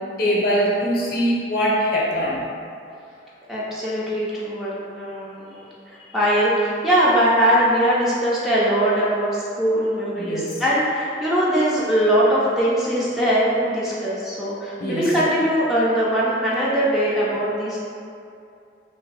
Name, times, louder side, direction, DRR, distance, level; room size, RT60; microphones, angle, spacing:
voice 1, 0.2-2.4 10.2-10.6 14.8-15.1, equal, 55° left, -5 dB, 0.7 m, -22 dB
voice 2, 3.5-17.8, equal, ahead, -9 dB, 0.4 m, -21 dB
2.6 x 2.5 x 3.9 m, 2.5 s
head